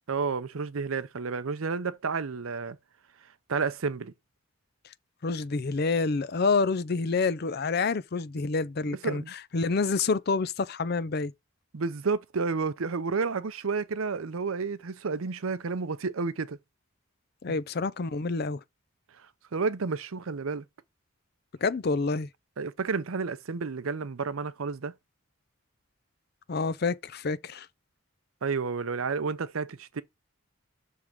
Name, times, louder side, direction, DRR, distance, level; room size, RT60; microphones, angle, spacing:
voice 1, 0.1-2.8 3.2-4.1 9.0-9.3 11.7-16.6 17.5-17.6 19.1-20.7 22.6-24.9 28.4-30.0, right 4 dB, 80° right, 0.6 m, -31 dB
voice 2, 5.2-11.3 17.4-18.6 21.6-22.3 26.5-27.7, left 4 dB, 50° left, 0.5 m, -28 dB
6.5 x 3.6 x 5.9 m
head